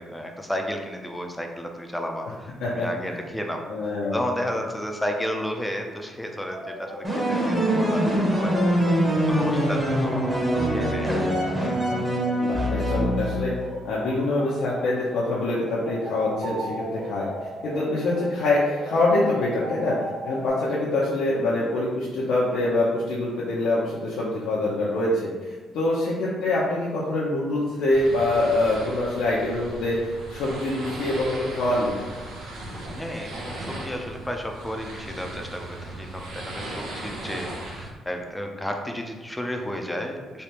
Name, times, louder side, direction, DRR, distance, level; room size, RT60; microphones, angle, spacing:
voice 1, 0.0-8.5 9.3-11.1 32.9-40.4, equal, 5° left, 3 dB, 0.5 m, -32 dB
voice 2, 2.6-3.2 3.7-4.3 12.4-13.5 13.8-17.3 17.6-20.0 20.2-31.9, left 2 dB, 85° left, -7 dB, 0.6 m, -25 dB
sound 1, 6.5-20.5, equal, 60° right, 0.7 m, -38 dB
sound 2, 7.0-13.7, equal, 15° right, 1.0 m, -23 dB
sound 3, 27.9-37.9, right 1 dB, 90° right, 0.8 m, -37 dB
3.3 x 3.1 x 2.9 m, 1.3 s
cardioid pair, 90°, 0 cm